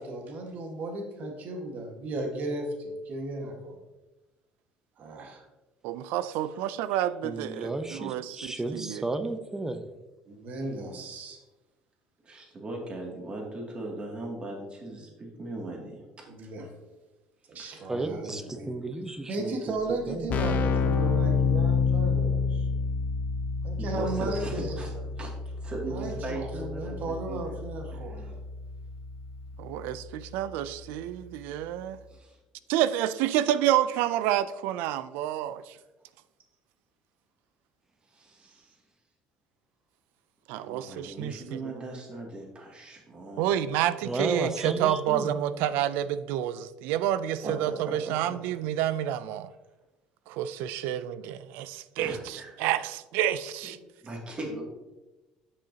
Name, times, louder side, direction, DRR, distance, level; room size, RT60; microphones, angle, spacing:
voice 1, 0.0-3.8 5.0-5.5 10.3-11.4 16.3-16.7 17.5-18.7 19.3-22.7 23.6-24.8 25.9-28.3 38.4-38.6 47.4-48.4 50.8-50.9, right 2 dB, 55° right, 1.5 m, -35 dB
voice 2, 5.8-9.0 29.6-32.0 32.7-35.8 40.5-41.6 43.4-49.5 50.3-53.8, right 11 dB, 80° right, 0.4 m, -29 dB
voice 3, 7.2-9.8 17.9-19.7 20.1-20.3 44.0-45.3, right 2 dB, 15° right, 0.6 m, -33 dB
voice 4, 12.2-16.0 17.6-17.9 23.8-24.9 25.2-27.5 28.2-28.3 32.1-32.4 38.1-38.7 40.6-43.5 52.0-52.5 53.6-53.7 54.0-54.6, right 2 dB, 35° right, 2.3 m, -39 dB
Keyboard (musical), 19.7-19.8 20.0-30.6, left 5 dB, 50° left, 0.7 m, -29 dB
8.1 x 6.3 x 2.8 m
supercardioid pair, 90°, 3 cm